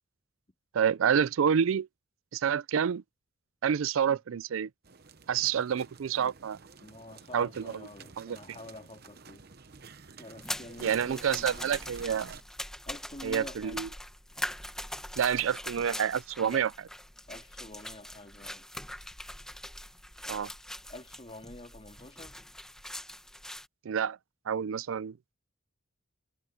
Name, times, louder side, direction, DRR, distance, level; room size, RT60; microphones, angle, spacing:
voice 1, 0.7-1.9 2.3-3.0 3.6-4.7 5.3-6.6 7.3-7.5 8.2-8.4 10.8-12.4 13.2-13.9 15.2-16.7 20.3-20.5 23.9-24.2 24.5-25.1, right 7 dB, 80° right, 0.4 m, -28 dB
sound 1, 4.8-12.4, right 5 dB, 50° right, 0.9 m, -51 dB
voice 2, 6.8-9.4 10.2-11.7 12.8-13.9 16.4-16.6 17.3-18.7 20.2-20.5 20.9-22.4, left 1 dB, 30° left, 3.0 m, -47 dB
sound 2, 10.4-23.7, left 1 dB, 5° left, 1.2 m, -42 dB
head